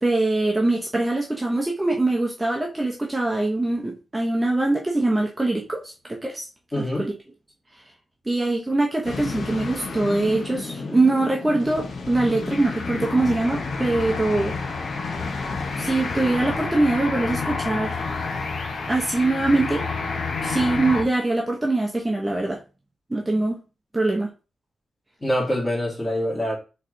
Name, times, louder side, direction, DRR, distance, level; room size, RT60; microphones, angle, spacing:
voice 1, 0.0-6.5 6.8-7.1 8.3-14.5 15.8-18.0 18.9-19.8 20.4-22.6 23.1-23.6 23.9-24.3, right 2 dB, 15° right, 0.8 m, -23 dB
voice 2, 6.7-7.1 25.2-26.6, equal, 20° left, 2.1 m, -25 dB
sound 1, 9.0-21.0, left 4 dB, 55° left, 0.8 m, -29 dB
4.2 x 3.2 x 3.8 m
cardioid pair, 100°, 0 cm